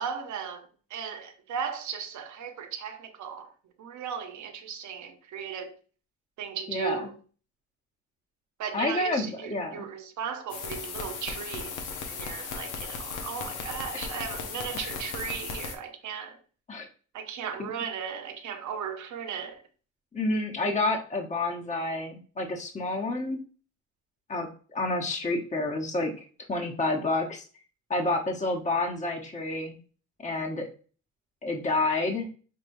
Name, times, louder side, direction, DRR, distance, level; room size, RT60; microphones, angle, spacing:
voice 1, 0.0-3.5 3.8-5.7 6.4-7.2 8.6-11.8 12.1-16.4 17.1-19.6, right 7 dB, 70° right, 0.9 m, -36 dB
voice 2, 6.7-7.1 8.7-9.9 16.7-16.9 17.6-17.7 20.1-23.4 24.3-27.4 27.9-29.8 30.2-30.7 31.4-32.3, left 2 dB, 25° left, 1.0 m, -29 dB
sound 1, 10.5-15.8, left 5 dB, 80° left, 0.9 m, -36 dB
5.5 x 3.2 x 2.6 m
cardioid pair, 90°, 30 cm